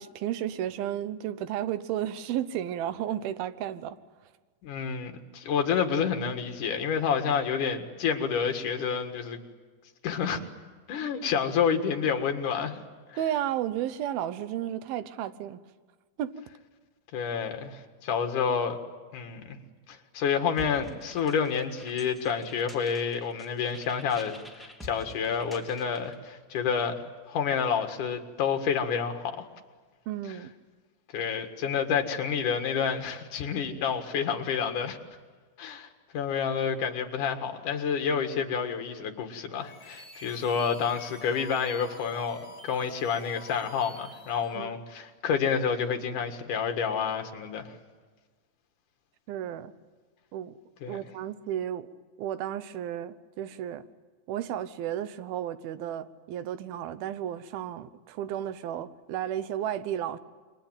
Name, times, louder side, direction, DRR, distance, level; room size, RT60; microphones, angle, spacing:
voice 1, 0.0-4.0 13.2-15.6 16.2-16.3 30.1-30.5 44.5-44.8 49.3-49.7 50.3-50.6 50.9-51.9 52.2-53.9 54.3-60.2, right 11 dB, 85° right, 13 dB, 2.8 m, -33 dB
voice 2, 4.6-9.4 10.0-10.4 10.9-12.8 17.1-18.8 19.1-19.6 19.9-29.4 31.1-35.0 35.6-35.9 36.1-42.4 42.6-47.7 50.8-51.0, left 6 dB, 60° left, 6 dB, 3.1 m, -29 dB
sound 1, 20.6-26.2, left 1 dB, ahead, 2.5 m, -48 dB
sound 2, 39.5-44.6, left 1 dB, 20° left, 5.1 m, -48 dB
27.5 x 23.5 x 9.0 m, 1.4 s
omnidirectional pair, 4.2 m